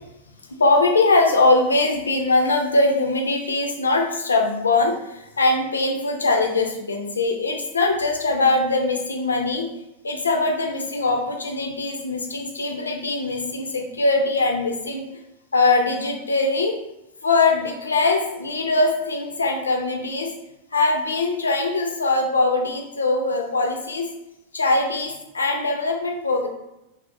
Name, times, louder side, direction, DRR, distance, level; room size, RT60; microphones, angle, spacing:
voice 1, 0.5-9.7 10.0-15.0 15.5-16.8 17.2-20.3 20.7-24.1 24.5-26.5, left 3 dB, 75° left, 2 dB, 0.4 m, -21 dB
2.5 x 2.0 x 2.7 m, 0.90 s
figure-of-eight pair, 90°, 0 cm